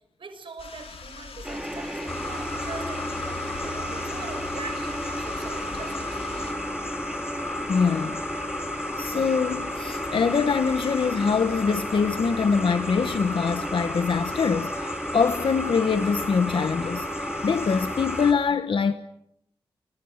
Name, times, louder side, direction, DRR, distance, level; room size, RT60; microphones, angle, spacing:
voice 1, 0.2-6.2, right 4 dB, 60° right, 6.6 m, -42 dB
sound 1, 0.6-6.5, left 5 dB, 80° left, 4.8 m, -43 dB
sound 2, 1.4-18.3, equal, 5° right, 2.5 m, -34 dB
sound 3, 2.1-18.3, left 2 dB, 25° left, 4.6 m, -34 dB
voice 2, 7.7-8.2 9.0-17.1 17.4-18.9, left 5 dB, 60° left, 1.2 m, -24 dB
29.0 x 28.0 x 6.6 m
wide cardioid pair, 125°, 10 cm